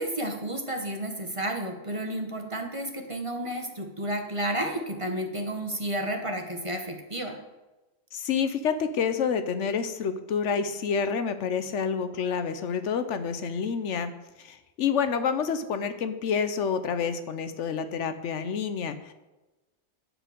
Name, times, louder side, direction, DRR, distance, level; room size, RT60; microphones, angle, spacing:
voice 1, 0.0-7.4, right 1 dB, 25° right, 3 dB, 1.1 m, -31 dB
voice 2, 8.1-14.1 14.4-19.1, left 6 dB, 75° left, 10 dB, 1.0 m, -28 dB
9.7 x 5.1 x 7.8 m, 1.1 s
omnidirectional pair, 1.3 m